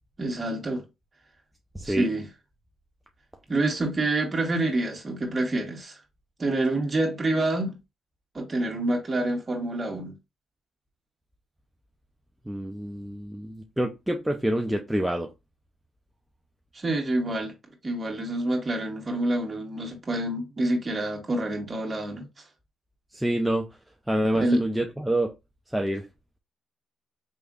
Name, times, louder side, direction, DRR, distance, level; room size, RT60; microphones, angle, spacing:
voice 1, 0.2-0.8 1.8-2.3 3.5-6.0 6.4-7.7 8.3-10.1 16.7-17.5 17.8-22.3 24.3-24.6, right 2 dB, 30° right, 1.9 m, -27 dB
voice 2, 1.7-2.1 12.5-15.3 23.1-23.7 24.1-25.3 25.7-26.1, right 1 dB, 5° right, 0.6 m, -27 dB
4.9 x 3.4 x 2.4 m
cardioid pair, 95°, 0 cm